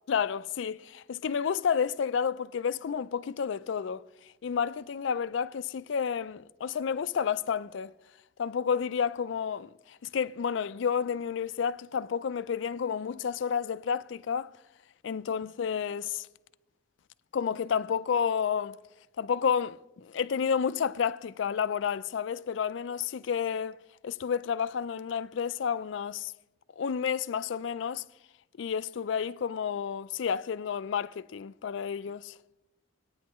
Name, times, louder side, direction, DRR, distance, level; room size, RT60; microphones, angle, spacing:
voice 1, 0.1-4.0 4.4-7.9 8.4-14.5 15.0-16.3 17.3-18.8 19.2-23.8 24.0-26.3 26.8-28.0 28.6-32.3, left 7 dB, 75° left, 0.4 m, -30 dB
22.5 x 9.3 x 3.0 m
head